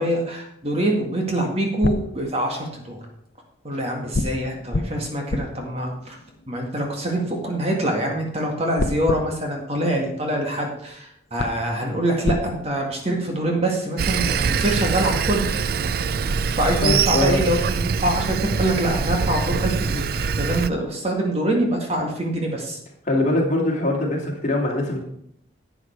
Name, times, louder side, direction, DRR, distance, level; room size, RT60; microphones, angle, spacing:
voice 1, 0.0-3.0 3.6-6.2 6.5-15.4 16.6-22.8, right 1 dB, 35° right, 1 dB, 1.9 m, -24 dB
sound 1, 1.5-3.0 4.1-7.4 8.8-10.7 11.0-11.1 11.4-12.5, left 2 dB, 60° left, 0.7 m, -30 dB
Sawing, 14.0-20.7, right 5 dB, 50° right, 0.4 m, -24 dB
voice 2, 16.8-17.4 23.1-25.0, left 1 dB, 40° left, 0 dB, 2.5 m, -22 dB
11.0 x 8.2 x 4.6 m, 0.72 s
head